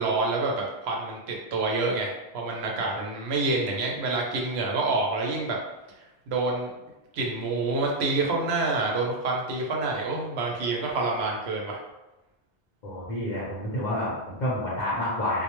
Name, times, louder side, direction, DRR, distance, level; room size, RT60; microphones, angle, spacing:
voice 1, 0.0-5.6 6.3-6.7 7.1-11.8, right 3 dB, 85° right, -1 dB, 0.9 m, -27 dB
voice 2, 12.8-15.4, left 1 dB, 50° left, -8 dB, 0.8 m, -29 dB
2.2 x 2.1 x 2.9 m, 0.98 s
omnidirectional pair, 1.0 m